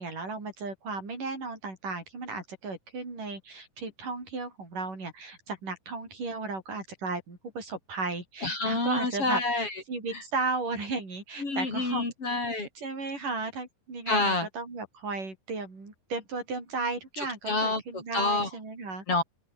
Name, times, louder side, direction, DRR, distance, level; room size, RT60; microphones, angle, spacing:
voice 1, 0.0-12.0 12.8-19.0, right 3 dB, 65° right, 9.1 m, -35 dB
voice 2, 8.4-9.7 11.4-12.7 14.1-14.5 17.5-17.8 18.1-18.5 19.1-19.2, left 3 dB, 40° left, 6.0 m, -27 dB
open air
omnidirectional pair, 4.1 m